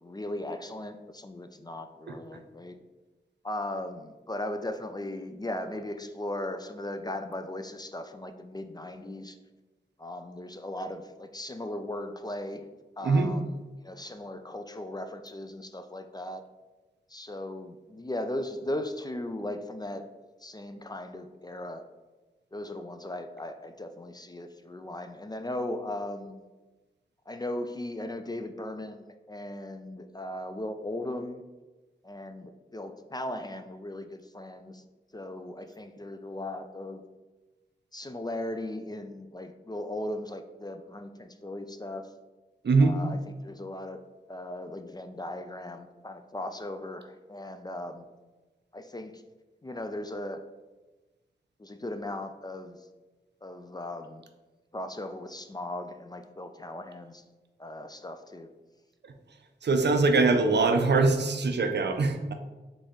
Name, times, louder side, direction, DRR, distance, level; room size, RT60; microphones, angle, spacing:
voice 1, 0.0-2.8 3.4-9.4 10.0-12.6 13.0-13.6 13.8-16.4 17.1-20.0 20.4-21.8 22.5-26.4 27.3-31.4 32.0-34.8 35.1-37.0 37.9-42.1 42.8-44.0 44.3-48.0 48.7-49.2 49.6-50.4 51.6-52.8 53.4-54.2 54.7-57.2 57.6-58.5, left 1 dB, 20° left, 7 dB, 0.3 m, -37 dB
voice 2, 42.6-43.0 59.6-62.3, right 3 dB, 65° right, 6 dB, 0.5 m, -23 dB
3.9 x 3.3 x 3.7 m, 1.2 s
cardioid pair, 45°, 19 cm